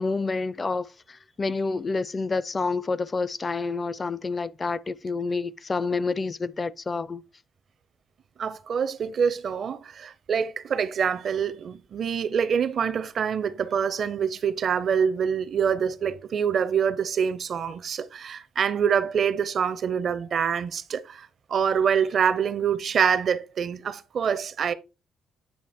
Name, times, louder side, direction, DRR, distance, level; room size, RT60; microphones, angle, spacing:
voice 1, 0.0-7.2, left 4 dB, 30° left, 0.4 m, -28 dB
voice 2, 8.4-24.7, right 7 dB, 55° right, 0.6 m, -25 dB
8.8 x 2.9 x 4.2 m
cardioid pair, 90°, 0 cm